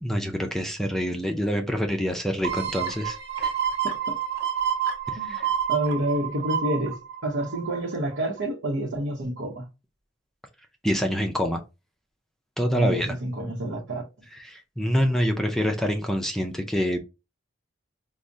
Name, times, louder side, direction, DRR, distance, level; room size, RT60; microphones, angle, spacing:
voice 1, 0.0-3.2 3.4-3.5 5.3-5.5 10.8-11.6 12.6-13.2 14.4-17.0, equal, ahead, 0.4 m, -26 dB
sound 1, 2.4-7.9 8.4-8.5, right 8 dB, 60° right, 1.0 m, -29 dB
voice 2, 5.7-7.0 7.2-9.7 12.7-14.0, right 1 dB, 85° right, 0.8 m, -28 dB
4.7 x 2.0 x 2.6 m
head